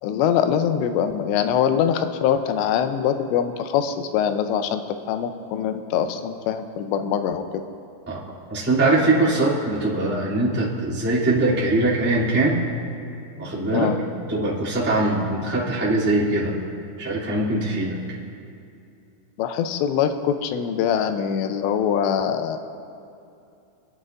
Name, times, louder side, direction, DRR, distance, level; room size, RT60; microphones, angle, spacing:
voice 1, 0.0-4.8 5.1-7.4 13.7-14.0 19.4-22.6, left 8 dB, 80° left, 8 dB, 2.7 m, -23 dB
voice 2, 8.5-12.6 13.4-13.9 14.3-16.5 17.0-18.0, right 2 dB, 5° right, -10 dB, 1.2 m, -22 dB
28.0 x 10.5 x 2.5 m, 2.6 s
omnidirectional pair, 5.4 m